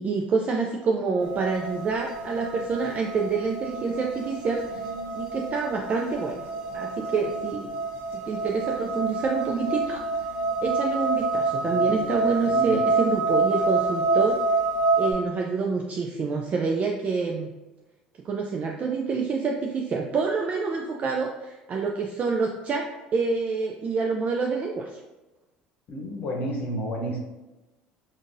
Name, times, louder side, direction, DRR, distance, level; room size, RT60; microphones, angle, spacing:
voice 1, 0.0-4.6 5.1-6.4 6.7-7.7 8.1-10.0 10.6-14.4 15.0-17.5 18.2-25.0, right 4 dB, 40° right, 1 dB, 0.4 m, -27 dB
sound 1, 1.2-15.1, right 3 dB, 70° right, 0.7 m, -27 dB
voice 2, 11.7-12.1 12.4-12.8 25.9-27.2, right 1 dB, 50° left, 0 dB, 0.9 m, -31 dB
3.6 x 2.5 x 2.7 m, 1.1 s
hypercardioid pair, 75°, 4 cm